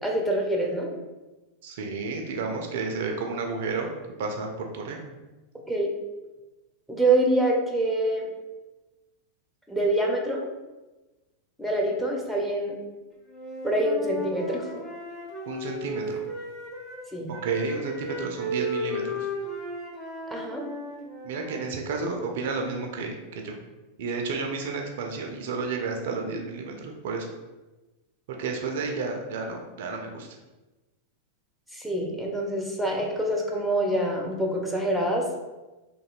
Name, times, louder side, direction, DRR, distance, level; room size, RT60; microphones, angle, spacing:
voice 1, 0.0-0.9 5.7-5.9 6.9-8.3 9.7-10.4 11.6-12.8 13.6-14.7 17.1-17.3 20.3-20.6 31.7-35.3, right 1 dB, ahead, -1 dB, 0.5 m, -25 dB
voice 2, 1.6-3.9 4.2-5.0 15.4-16.2 17.3-19.3 21.2-23.5 24.0-27.3 28.3-30.3, right 4 dB, 55° right, 2 dB, 0.3 m, -31 dB
Wind instrument woodwind instrument, 13.3-17.0 17.3-21.7, equal, 25° left, 1.0 m, -35 dB
2.9 x 2.6 x 2.3 m, 1.1 s
figure-of-eight pair, 90°, 0 cm